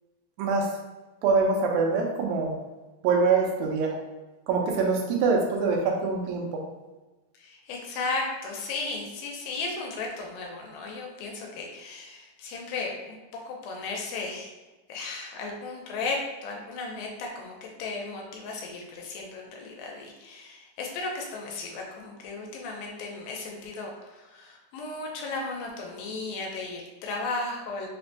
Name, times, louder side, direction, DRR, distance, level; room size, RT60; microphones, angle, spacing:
voice 1, 0.4-0.7 1.2-2.6 3.0-4.0 4.5-6.6, right 4 dB, 85° right, 1 dB, 2.3 m, -24 dB
voice 2, 7.4-13.2 13.5-14.5 14.9-16.2 16.4-27.9, left 3 dB, 90° left, 0 dB, 2.4 m, -35 dB
5.7 x 2.2 x 2.7 m, 1.1 s
omnidirectional pair, 4.1 m